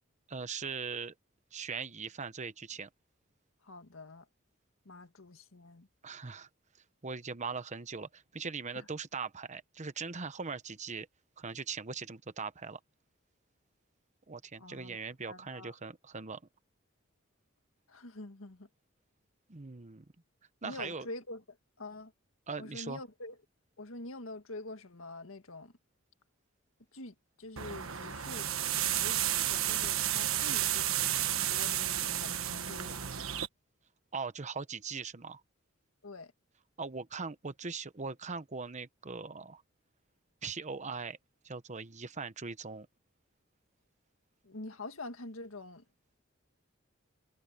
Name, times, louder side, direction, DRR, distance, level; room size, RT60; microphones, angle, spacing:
voice 1, 0.3-1.1 1.5-2.9 6.0-6.5 7.0-11.1 11.4-12.8 14.3-16.4 19.5-20.0 20.6-21.1 22.5-23.0 34.1-35.4 36.8-39.6 40.4-41.2 41.4-42.9, right 5 dB, 35° right, 1.0 m, -40 dB
voice 2, 3.6-4.3 4.8-5.9 8.7-8.8 14.6-15.0 15.2-15.7 17.9-18.7 20.6-22.1 22.6-23.4 23.8-25.7 26.9-28.5 28.9-33.3 36.0-36.3 44.4-45.8, left 2 dB, 80° left, 1.8 m, -46 dB
sound 1, 27.6-33.5, right 11 dB, 85° right, 1.4 m, -32 dB
head